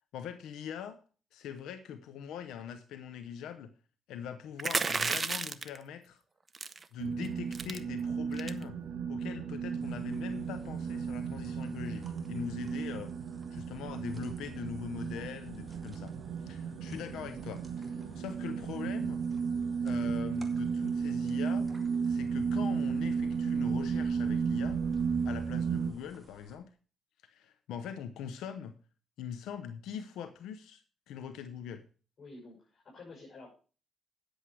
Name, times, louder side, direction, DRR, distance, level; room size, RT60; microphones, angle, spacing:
voice 1, 0.1-1.0 1.3-3.7 4.1-6.2 6.9-8.8 9.1-13.1 13.5-16.1 16.4-19.3 19.8-21.7 22.0-24.8 25.2-26.7 27.2-28.8 29.2-30.8 31.1-31.8, left 8 dB, 85° left, 0.8 m, -42 dB
sound 1, 4.6-5.8 6.6-6.8 7.2-7.3 7.5-7.8 8.3-8.6, right 4 dB, 30° right, 0.7 m, -32 dB
sound 2, 7.0-25.9, right 6 dB, 80° right, 1.8 m, -34 dB
sound 3, 9.8-26.6, right 2 dB, 10° right, 2.3 m, -56 dB
voice 2, 14.9-15.2 18.1-18.2 32.2-33.5, left 2 dB, 50° left, 6.3 m, -51 dB
9.8 x 8.0 x 4.7 m
cardioid pair, 90°, 0 cm